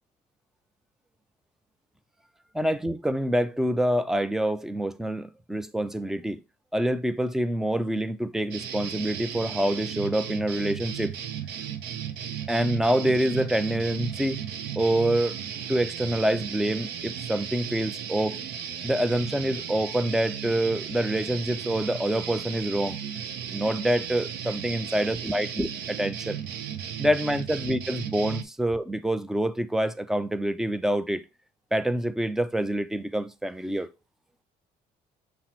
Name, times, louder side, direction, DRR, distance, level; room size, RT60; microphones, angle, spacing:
voice 1, 2.5-6.4 6.7-11.2 12.5-14.4 14.8-15.4 15.7-18.4 18.8-23.0 23.5-26.4 27.0-31.2 31.7-33.9, right 1 dB, 5° right, 0.4 m, -26 dB
sound 1, 8.5-28.4, right 9 dB, 70° right, 0.6 m, -35 dB
5.6 x 2.0 x 4.4 m
cardioid pair, 110°, 17 cm